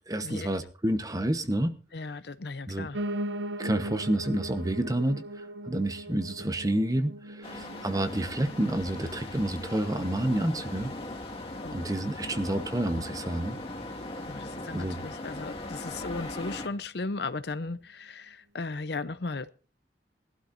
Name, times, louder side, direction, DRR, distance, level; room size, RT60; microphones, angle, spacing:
voice 1, 0.1-1.8 2.7-2.9 3.6-10.9 11.7-13.6 14.7-15.0, right 1 dB, 20° right, 1.0 m, -29 dB
voice 2, 1.9-3.0 11.6-11.8 14.2-19.5, left 3 dB, 65° left, 0.7 m, -36 dB
Piano, 2.9-12.0 12.4-13.6 13.9-14.0 14.2-14.3 14.5-14.6 15.2-15.3, right 1 dB, 80° right, 0.8 m, -40 dB
sound 1, 7.4-16.7, left 2 dB, 30° left, 1.8 m, -39 dB
21.0 x 12.0 x 2.6 m
head